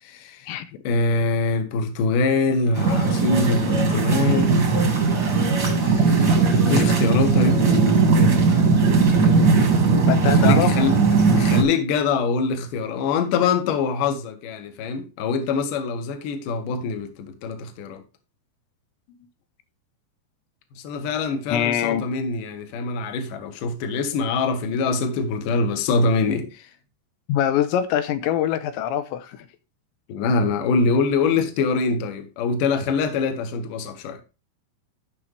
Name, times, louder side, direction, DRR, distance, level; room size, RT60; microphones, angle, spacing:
voice 1, 0.0-0.5 0.8-4.6 5.8-7.6 10.3-11.0 11.4-18.0 20.8-26.7 30.1-34.2, left 4 dB, 60° left, 2.5 m, -24 dB
sound 1, 2.7-11.6, right 4 dB, 40° right, 1.5 m, -18 dB
voice 2, 10.1-10.7 21.5-22.0 27.3-29.5, left 10 dB, 85° left, 3.0 m, -23 dB
13.5 x 6.1 x 3.3 m
omnidirectional pair, 5.1 m